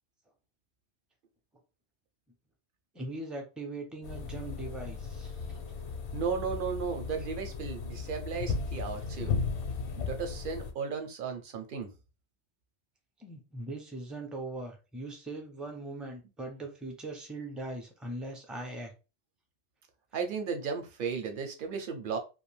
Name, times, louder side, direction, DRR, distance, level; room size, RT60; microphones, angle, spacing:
voice 1, 2.9-5.6 13.2-18.9, right 2 dB, ahead, 2 dB, 0.3 m, -40 dB
sound 1, 4.0-10.7, left 5 dB, 85° left, 0.9 m, -36 dB
voice 2, 6.1-9.3 10.0-11.9 20.1-22.2, right 5 dB, 55° right, 5 dB, 0.7 m, -35 dB
2.5 x 2.2 x 3.2 m, 0.30 s
omnidirectional pair, 1.1 m